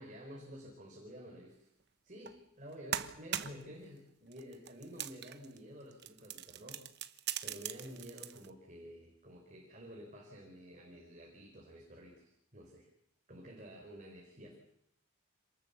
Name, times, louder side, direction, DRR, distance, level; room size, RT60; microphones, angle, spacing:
voice 1, 0.0-1.7 2.0-12.9 13.3-14.6, equal, 35° right, 0 dB, 4.7 m, -51 dB
sound 1, 2.3-2.4 2.7-3.7 4.3-5.6 5.9-8.5, right 10 dB, 50° right, 1.0 m, -41 dB
27.0 x 20.0 x 7.2 m, 0.77 s
head